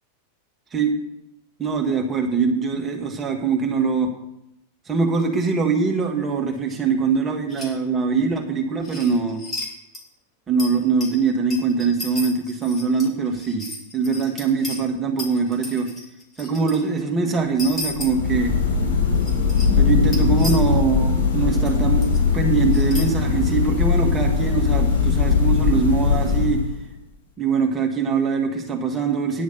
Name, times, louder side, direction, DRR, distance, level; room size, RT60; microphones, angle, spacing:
voice 1, 1.6-4.1 4.9-9.4 10.5-13.7 13.9-15.9 16.4-18.5 19.8-26.6 27.4-29.4, right 5 dB, 20° right, 2 dB, 1.9 m, -22 dB
sound 1, 7.5-7.7 8.8-9.7 9.9-10.0 10.6-14.8 15.2-16.8 17.6-18.1 19.1-19.7 20.0-20.7 21.6-21.7 22.0-22.2 22.7-23.0, left 2 dB, 20° left, 3.6 m, -34 dB
sound 2, 17.8-27.0, left 5 dB, 60° left, 4.7 m, -20 dB
10.0 x 6.3 x 6.9 m, 0.81 s
figure-of-eight pair, 90°, 0 cm